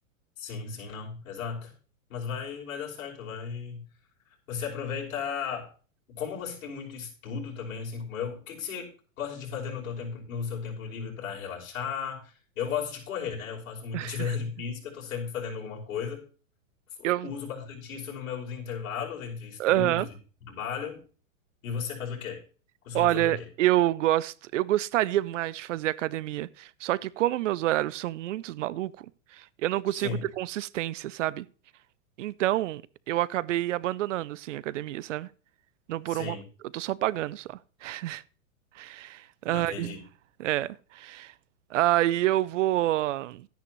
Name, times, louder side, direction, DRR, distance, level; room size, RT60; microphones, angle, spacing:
voice 1, 0.4-1.7 2.1-3.9 4.5-5.7 6.1-8.9 9.2-16.2 17.2-20.1 20.5-21.0 21.6-22.4 22.8-23.4 29.9-30.2 36.1-36.4 39.5-40.0, left 6 dB, 65° left, 5.5 m, -35 dB
voice 2, 13.9-14.3 17.0-17.3 19.6-20.1 22.9-29.1 29.3-31.5 32.2-32.8 33.1-35.3 35.9-36.4 36.7-38.2 38.8-39.9 40.4-41.3 41.7-43.5, right 14 dB, 60° right, 0.5 m, -28 dB
12.5 x 10.0 x 3.1 m
supercardioid pair, 155°, 42 cm